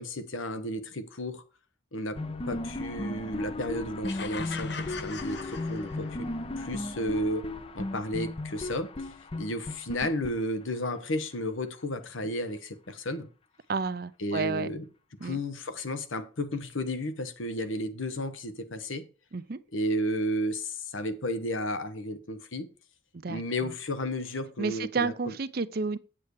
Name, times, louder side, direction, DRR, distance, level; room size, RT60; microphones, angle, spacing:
voice 1, 0.0-1.4 1.9-2.2 2.5-6.3 6.6-7.5 7.7-13.3 14.2-14.9 15.2-19.1 19.7-22.7 23.3-25.4, left 1 dB, 85° left, 1.2 m, -33 dB
sound 1, 2.1-11.0, left 2 dB, 30° left, 0.6 m, -36 dB
sound 2, 4.0-6.4, left 5 dB, 60° left, 0.9 m, -41 dB
voice 2, 13.7-14.7 15.2-15.4 19.3-19.6 23.2-23.7 24.6-26.0, right 4 dB, 50° right, 0.5 m, -31 dB
8.5 x 7.6 x 4.6 m
head